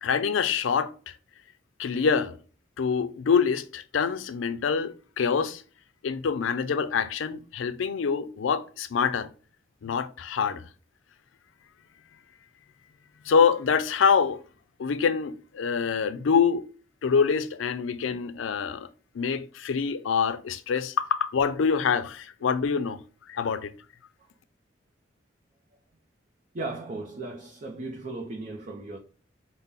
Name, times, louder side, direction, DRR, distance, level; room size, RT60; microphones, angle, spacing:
voice 1, 0.0-1.1 1.8-2.4 2.8-5.6 6.0-9.3 9.8-10.6 13.3-14.4 14.8-16.6 17.0-18.9 19.1-23.0 23.3-23.7, left 6 dB, 90° left, 0.4 m, -25 dB
voice 2, 26.5-29.0, right 2 dB, 40° right, 0.5 m, -36 dB
5.6 x 2.1 x 3.6 m
head